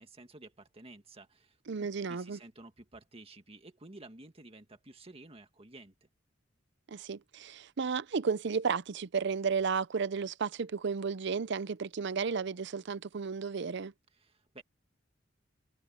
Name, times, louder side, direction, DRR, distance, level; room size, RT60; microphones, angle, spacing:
voice 1, 0.0-6.1 14.1-14.6, right 2 dB, 30° right, 2.0 m, -53 dB
voice 2, 1.7-2.4 6.9-13.9, right 5 dB, 65° right, 0.6 m, -33 dB
head